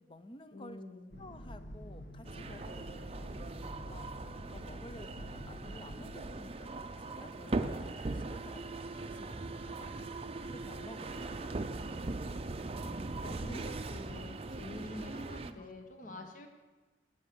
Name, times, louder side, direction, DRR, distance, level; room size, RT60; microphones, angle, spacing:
voice 1, 0.0-0.8 1.2-3.5 3.9-4.1 4.5-10.2 10.5-11.6 13.0-13.7 15.6-15.7 16.0-16.3, left 1 dB, 25° left, 10 dB, 0.6 m, -53 dB
voice 2, 0.5-1.2 13.2-16.5, left 1 dB, 45° left, 4 dB, 1.3 m, -46 dB
sound 1, 1.1-6.3, equal, 60° left, 1.3 m, -48 dB
sound 2, 2.2-15.5, right 2 dB, 30° right, 0.5 m, -40 dB
12.0 x 6.5 x 7.8 m, 1.3 s
head